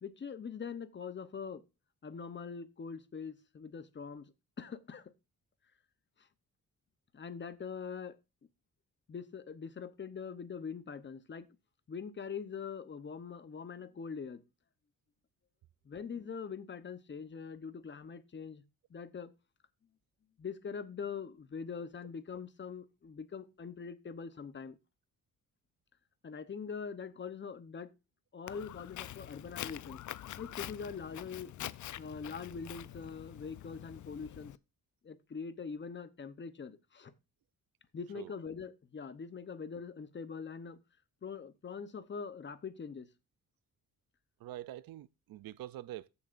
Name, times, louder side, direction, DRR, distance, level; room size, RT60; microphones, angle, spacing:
voice 1, 0.0-1.6 2.0-5.1 6.2-6.3 7.1-8.2 9.1-11.5 11.9-14.4 15.8-18.6 18.9-19.3 20.4-24.8 26.2-27.9 28.3-30.0 30.4-31.5 32.0-34.5 35.0-37.1 37.9-40.8 41.2-43.1, left 6 dB, 35° left, 0.8 m, -43 dB
Walk footsteps, 28.5-34.6, left 12 dB, 60° left, 0.4 m, -45 dB
voice 2, 44.4-46.1, right 14 dB, 90° right, 0.5 m, -45 dB
14.5 x 7.1 x 2.5 m
wide cardioid pair, 140°, 34 cm